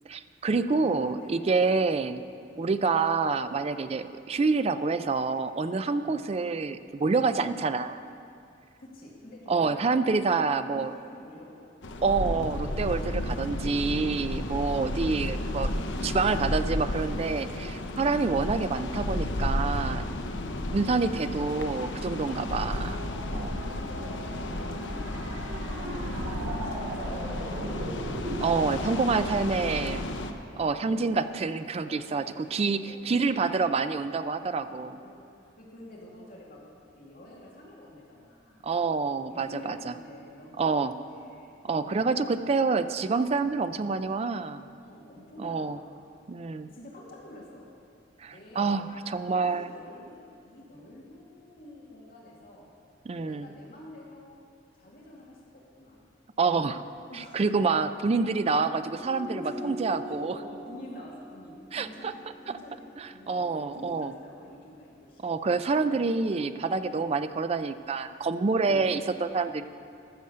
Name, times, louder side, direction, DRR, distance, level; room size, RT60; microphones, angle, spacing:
voice 1, 0.1-2.2 2.6-8.0 9.5-10.9 12.0-15.7 16.0-20.1 20.7-23.1 23.3-23.6 28.4-30.0 30.6-35.0 38.6-39.9 40.6-40.9 41.6-44.7 45.4-45.8 46.3-46.7 48.2-49.7 53.1-53.5 56.4-56.8 57.1-60.4 61.7-62.1 62.5-62.6 63.0-64.1 65.2-69.6, right 4 dB, 35° right, 11 dB, 0.4 m, -27 dB
voice 2, 0.7-1.7 2.5-2.7 5.9-6.2 7.1-7.4 8.8-9.9 10.6-11.7 15.0-16.6 20.3-20.6 23.3-27.9 29.1-31.5 31.8-34.2 34.6-35.3 35.6-36.6 36.9-38.6 39.3-42.6 44.8-45.9 46.7-47.7 48.3-52.7 53.2-54.4 54.7-56.0 57.1-57.4 59.0-59.7 60.0-65.3 65.9-66.1 66.7-67.0 68.6-68.8 69.5-69.6, left 1 dB, 50° left, -4 dB, 2.2 m, -48 dB
sound 1, 11.8-30.3, left 1 dB, 80° left, 0.7 m, -33 dB
sound 2, 22.0-28.5, right 1 dB, 75° right, 1.8 m, -39 dB
sound 3, 59.0-63.8, left 1 dB, 35° left, 2.5 m, -43 dB
14.0 x 6.4 x 6.7 m, 2.4 s
head